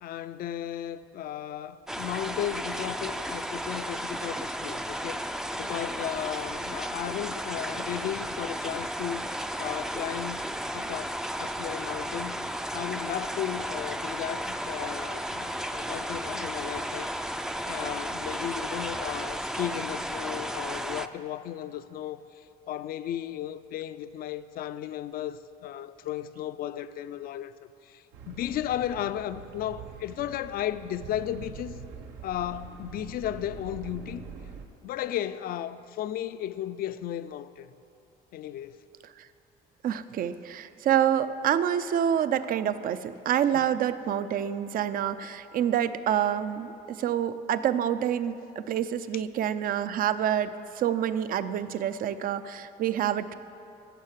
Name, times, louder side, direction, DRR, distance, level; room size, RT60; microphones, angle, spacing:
voice 1, 0.0-10.5 10.7-17.1 17.6-31.8 32.2-34.2 34.8-37.7 38.3-38.8 43.5-43.6 49.1-49.2, left 11 dB, 60° left, 0.5 m, -35 dB
sound 1, 1.9-21.1, equal, 5° right, 0.4 m, -34 dB
sound 2, 28.1-34.6, right 6 dB, 85° right, 1.1 m, -44 dB
voice 2, 39.8-53.3, right 10 dB, 55° right, 0.6 m, -27 dB
16.0 x 6.4 x 7.4 m
cardioid pair, 110°, 17 cm